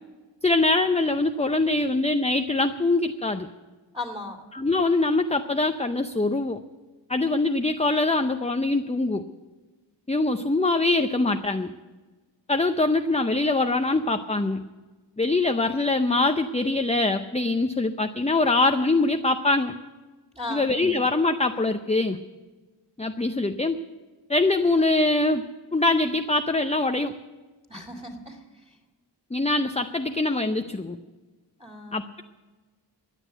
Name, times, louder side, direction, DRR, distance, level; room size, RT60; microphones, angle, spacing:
voice 1, 0.4-3.5 4.5-6.6 7.1-9.2 10.1-11.7 12.5-14.6 15.2-19.8 20.5-22.2 23.0-23.8 24.3-27.1 29.3-31.0 31.9-32.2, left 2 dB, 15° left, 7 dB, 0.6 m, -23 dB
voice 2, 3.9-4.4 20.3-20.7 27.7-28.8 31.6-32.1, left 2 dB, 15° right, 5 dB, 2.7 m, -37 dB
15.0 x 9.9 x 8.0 m, 1.3 s
wide cardioid pair, 45°, 45 cm